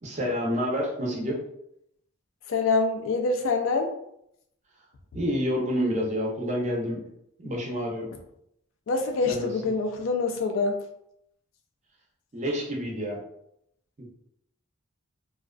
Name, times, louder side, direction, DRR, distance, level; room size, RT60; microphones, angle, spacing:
voice 1, 0.0-1.4 5.1-7.0 7.4-8.1 9.3-9.5 12.3-13.2 14.0-14.1, equal, 35° right, -1 dB, 0.5 m, -28 dB
voice 2, 2.5-3.9 8.9-10.8, left 3 dB, 65° left, 5 dB, 0.4 m, -25 dB
2.4 x 2.3 x 2.2 m, 0.76 s
head